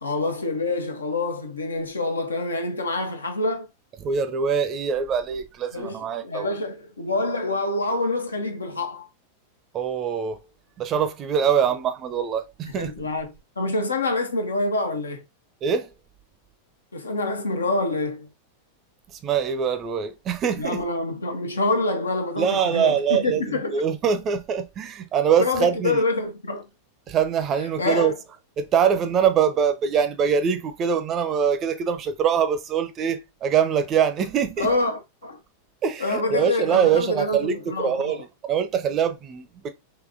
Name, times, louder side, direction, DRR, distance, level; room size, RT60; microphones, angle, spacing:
voice 1, 0.0-3.7 5.7-9.1 12.7-15.3 16.9-18.3 20.6-23.9 25.4-26.7 27.8-28.2 34.6-35.4 36.0-38.2, left 2 dB, 75° left, 0.6 m, -26 dB
voice 2, 4.0-6.5 9.7-10.4 10.8-12.9 15.6-15.9 19.1-20.8 22.4-26.0 27.1-28.1 28.6-34.7 35.8-39.7, right 7 dB, 30° right, 0.5 m, -23 dB
3.8 x 2.8 x 2.5 m
figure-of-eight pair, 90°, 0 cm